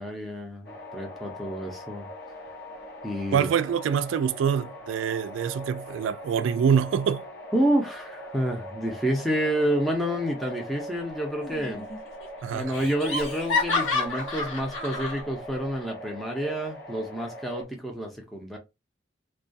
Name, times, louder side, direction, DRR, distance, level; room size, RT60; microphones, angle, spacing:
voice 1, 0.0-2.1 3.0-3.5 7.5-11.9 12.5-18.6, equal, ahead, 0.5 m, -29 dB
sound 1, 0.6-17.6, equal, 55° left, 0.7 m, -41 dB
voice 2, 3.3-7.2 12.4-12.7, right 7 dB, 80° right, 0.3 m, -25 dB
Laughter, 11.4-12.0 12.2-12.3 12.7-15.2, left 3 dB, 85° left, 1.0 m, -29 dB
2.3 x 2.2 x 2.5 m
head